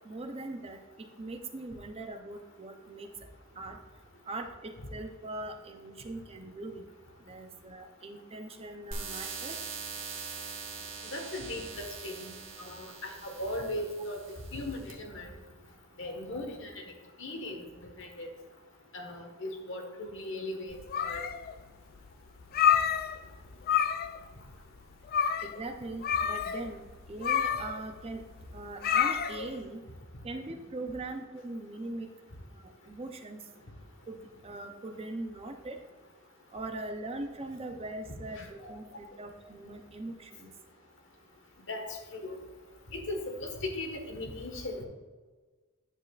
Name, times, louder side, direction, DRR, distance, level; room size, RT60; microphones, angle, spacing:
voice 1, 0.0-3.1 3.6-3.8 4.3-6.9 7.3-9.6 25.4-26.8 27.1-28.2 28.5-29.8 30.2-32.1 32.5-33.5 34.1-35.8 36.5-40.5, right 2 dB, 30° right, 5 dB, 0.6 m, -41 dB
sound 1, 8.9-14.9, right 5 dB, 65° right, 1.5 m, -42 dB
voice 2, 11.1-12.3 12.6-14.2 14.5-15.3 16.0-16.8 17.2-17.6 18.0-18.3 18.9-21.2 38.4-38.7 41.7-41.8 42.1-42.3 42.9-44.8, left 1 dB, 65° left, 3 dB, 1.4 m, -38 dB
sound 2, 20.7-21.6 22.0-22.1 22.4-23.4 23.6-24.2 24.5-24.6 25.1-25.6 26.0-29.6, left 8 dB, 45° left, 0.3 m, -28 dB
9.7 x 7.5 x 2.4 m, 1.4 s
head